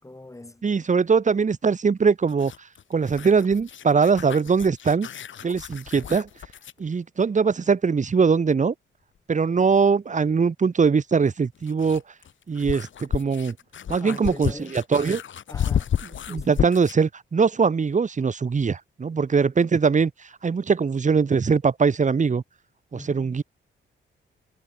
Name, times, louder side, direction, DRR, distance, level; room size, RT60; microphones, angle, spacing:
voice 1, 0.0-0.6 14.0-14.8 15.5-15.9 16.3-16.6 22.9-23.4, left 2 dB, 15° left, 5.3 m, -41 dB
voice 2, 0.6-2.5 2.9-5.1 5.4-6.3 6.8-8.7 9.3-12.0 12.5-13.5 13.9-15.2 16.3-20.1 20.4-22.4 22.9-23.4, right 5 dB, 35° right, 1.6 m, -21 dB
sound 1, 2.3-6.8 9.2-9.3 11.3-17.1, left 9 dB, 70° left, 1.9 m, -32 dB
wide cardioid pair, 110°, 20 cm